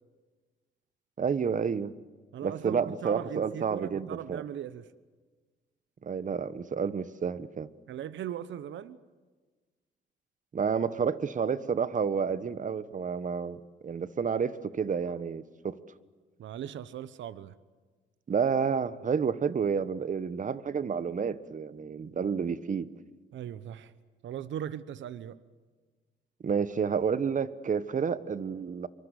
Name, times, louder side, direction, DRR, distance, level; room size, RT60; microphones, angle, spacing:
voice 1, 1.2-1.9 2.4-4.4 6.0-7.7 10.5-15.8 18.3-22.9 26.4-28.9, right 6 dB, 40° right, 15 dB, 1.3 m, -30 dB
voice 2, 2.3-4.9 7.9-9.0 16.4-17.5 23.3-23.9 24.2-25.4, right 10 dB, 70° right, 15 dB, 1.1 m, -38 dB
26.5 x 24.0 x 8.3 m, 1.4 s
cardioid pair, 90°, 20 cm